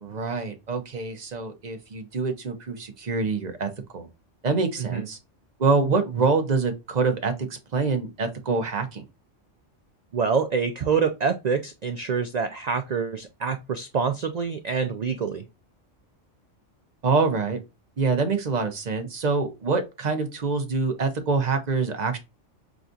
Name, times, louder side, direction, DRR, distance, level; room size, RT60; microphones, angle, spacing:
voice 1, 0.0-4.1 4.4-5.2 5.6-9.0 17.0-17.6 18.0-22.2, right 4 dB, 40° right, 0.8 m, -25 dB
voice 2, 10.1-15.5, right 5 dB, 85° right, 0.3 m, -26 dB
6.0 x 2.3 x 2.5 m
omnidirectional pair, 1.3 m